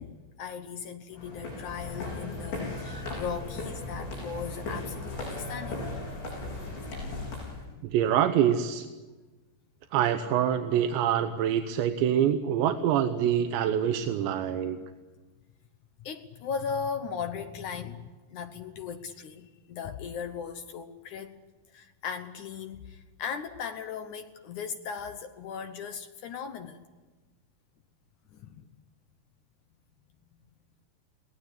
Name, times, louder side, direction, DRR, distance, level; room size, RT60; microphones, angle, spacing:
voice 1, 0.0-5.9 7.7-7.8 16.0-21.3 21.7-26.9 28.3-28.6, left 6 dB, 70° left, 7 dB, 1.8 m, -38 dB
sound 1, 1.1-7.6, left 2 dB, 90° left, 10.5 m, -37 dB
voice 2, 7.8-8.9 9.9-14.8, right 9 dB, 90° right, 7 dB, 3.3 m, -25 dB
23.0 x 18.5 x 10.0 m, 1.2 s
omnidirectional pair, 5.0 m